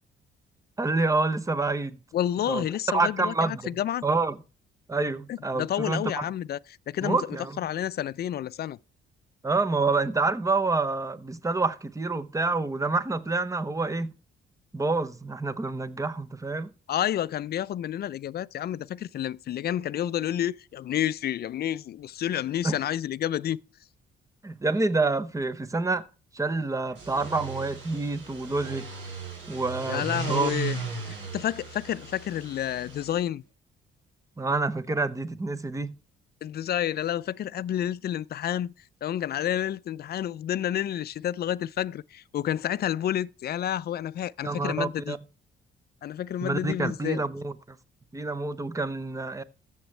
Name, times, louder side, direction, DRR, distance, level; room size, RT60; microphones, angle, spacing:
voice 1, 0.8-2.0 2.5-2.7 2.9-3.6 4.0-4.4 4.9-6.2 7.0-7.6 9.4-14.1 14.7-16.7 22.6-22.8 24.4-26.0 26.3-28.8 29.5-30.5 34.4-35.9 44.4-45.2 46.4-47.8 48.1-49.4, right 3 dB, 15° right, 0.9 m, -27 dB
voice 2, 2.1-4.0 5.3-6.6 6.9-7.3 7.6-8.8 16.9-23.6 29.9-30.8 31.1-33.4 36.4-38.7 39.0-45.2 46.0-47.2, left 11 dB, 55° left, 0.5 m, -30 dB
sound 1, 26.9-33.2, right 5 dB, 75° right, 4.5 m, -36 dB
14.0 x 7.2 x 3.3 m
cardioid pair, 90°, 20 cm